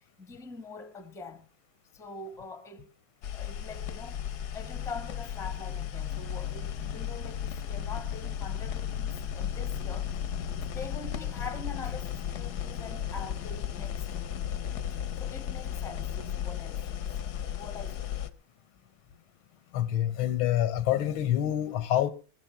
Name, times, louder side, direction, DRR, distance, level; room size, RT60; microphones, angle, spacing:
voice 1, 0.0-1.5 1.9-2.9 3.3-4.2 4.5-10.1 10.7-14.3 15.2-17.1 17.5-18.1, left 4 dB, ahead, 0.9 m, -44 dB
sound 1, 3.2-18.3, left 9 dB, 60° left, 1.2 m, -35 dB
voice 2, 19.7-22.1, left 12 dB, 85° left, 1.7 m, -26 dB
19.0 x 7.7 x 5.7 m
omnidirectional pair, 2.2 m